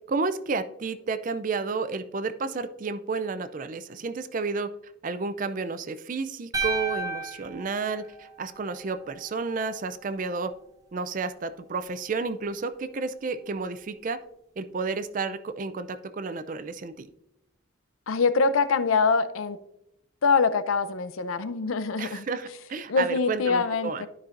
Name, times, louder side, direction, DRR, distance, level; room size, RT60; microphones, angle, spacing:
voice 1, 0.1-4.7 5.0-10.5 10.9-14.2 14.6-17.1 22.0-24.0, right 4 dB, 40° right, 12 dB, 0.4 m, -31 dB
sound 1, 6.5-8.8, right 3 dB, 15° right, 0.8 m, -32 dB
voice 2, 18.1-19.6 20.2-22.2 22.9-24.1, left 4 dB, 90° left, 13 dB, 0.5 m, -24 dB
12.5 x 5.4 x 2.5 m, 0.83 s
head